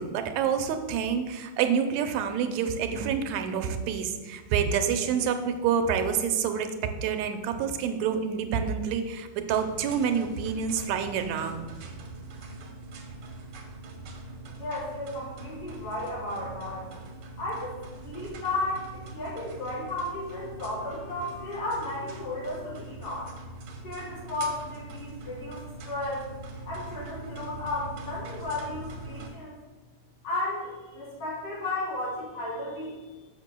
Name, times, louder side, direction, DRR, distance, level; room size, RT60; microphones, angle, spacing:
voice 1, 0.0-6.7 7.0-11.7, right 7 dB, 80° right, 7 dB, 1.8 m, -27 dB
sound 1, 9.5-29.3, right 3 dB, 65° right, 1.5 m, -43 dB
voice 2, 14.6-16.9 17.4-23.3 23.8-25.6 25.8-26.3 26.6-29.6 30.2-33.1, left 2 dB, 60° left, -9 dB, 3.1 m, -34 dB
11.0 x 6.8 x 2.2 m, 1.3 s
omnidirectional pair, 3.3 m